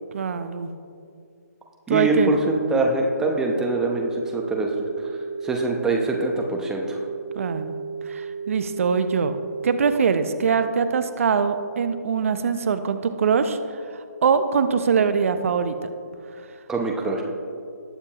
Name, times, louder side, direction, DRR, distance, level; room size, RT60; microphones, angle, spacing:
voice 1, 0.1-0.7 1.9-2.3 7.3-7.8 8.1-9.3 9.6-15.9, right 6 dB, 55° right, 10 dB, 0.7 m, -23 dB
voice 2, 1.9-4.7 5.0-5.1 5.4-7.0 16.7-17.2, right 2 dB, 5° right, 1 dB, 0.8 m, -23 dB
sound 1, 2.0-10.0, right 5 dB, 30° right, 1.3 m, -34 dB
19.5 x 6.9 x 2.9 m, 2.4 s
figure-of-eight pair, 145°, 9 cm